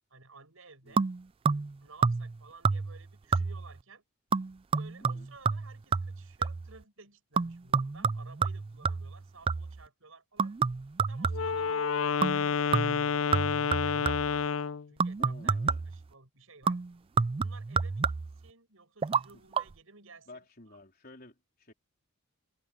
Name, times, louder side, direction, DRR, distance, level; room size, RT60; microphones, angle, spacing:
voice 1, 0.1-1.0 1.8-4.0 4.8-10.5 11.1-14.5 14.9-15.6 15.8-16.8 17.4-20.8, right 4 dB, 75° right, 5.5 m, -55 dB
sound 1, 1.0-1.8 2.0-2.4 2.6-3.0 3.3-3.8 4.3-6.7 7.4-9.8 10.4-11.7 12.2-12.5 12.7-14.4 15.0-16.0 16.7-18.4 19.0-19.2 19.5-19.6, right 5 dB, 25° right, 0.3 m, -29 dB
Wind instrument woodwind instrument, 11.3-14.9, left 6 dB, 65° left, 0.4 m, -29 dB
voice 2, 15.2-15.8 20.3-21.7, left 2 dB, 45° left, 4.1 m, -52 dB
head